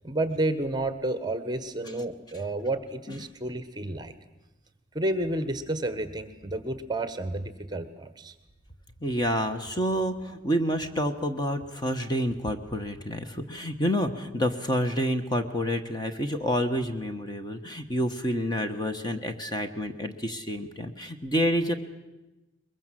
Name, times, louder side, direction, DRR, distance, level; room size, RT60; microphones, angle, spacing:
voice 1, 0.0-4.1 4.9-8.3, right 1 dB, 20° right, 11 dB, 1.3 m, -30 dB
voice 2, 9.0-21.7, equal, 20° left, 7 dB, 1.2 m, -28 dB
22.0 x 22.0 x 7.6 m, 1.0 s
head